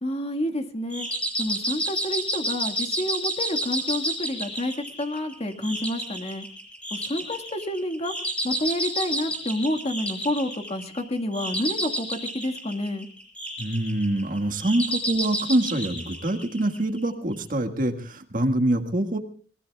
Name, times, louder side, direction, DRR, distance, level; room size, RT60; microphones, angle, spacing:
voice 1, 0.0-1.1 1.4-6.5 6.9-8.1 8.4-13.1, left 1 dB, 35° left, 5 dB, 1.8 m, -29 dB
sound 1, 0.9-17.0, right 1 dB, 5° left, 5.5 m, -31 dB
voice 2, 13.6-19.2, right 1 dB, 50° right, 5 dB, 1.8 m, -25 dB
24.5 x 21.0 x 2.4 m, 0.40 s
head